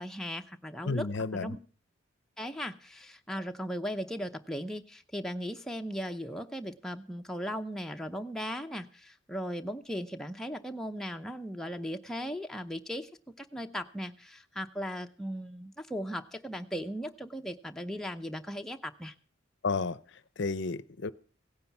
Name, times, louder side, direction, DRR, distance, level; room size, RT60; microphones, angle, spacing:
voice 1, 0.0-1.1 1.3-1.6 2.4-13.1 13.4-19.1, equal, ahead, 0.7 m, -37 dB
voice 2, 0.8-1.6 19.6-21.1, left 4 dB, 60° left, 0.6 m, -32 dB
16.5 x 9.7 x 5.9 m
head